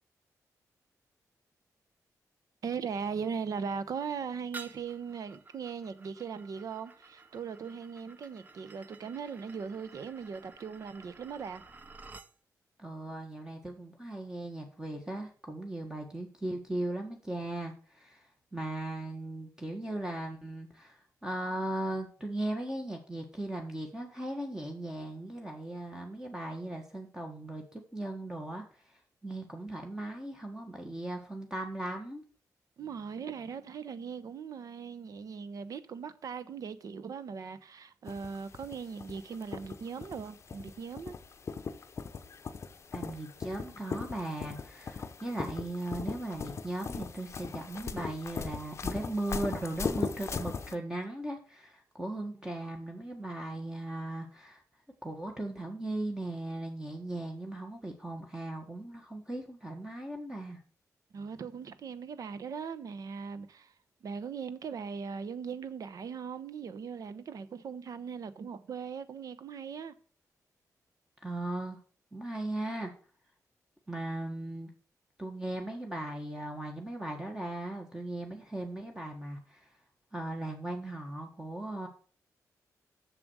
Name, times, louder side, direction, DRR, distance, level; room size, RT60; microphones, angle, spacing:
voice 1, 2.6-11.6 32.8-41.1 61.1-63.7 64.0-69.9, right 6 dB, 65° right, 0.9 m, -39 dB
sound 1, 4.5-12.3, right 4 dB, 25° right, 0.8 m, -52 dB
voice 2, 12.8-28.6 29.2-32.2 42.9-54.6 55.0-60.6 71.2-71.8 72.1-72.9 73.9-74.7 75.2-79.7 80.1-81.9, right 1 dB, 10° right, 1.6 m, -38 dB
sound 2, 38.1-50.7, left 5 dB, 45° left, 0.7 m, -39 dB
7.3 x 6.9 x 6.3 m
wide cardioid pair, 120°, 6 cm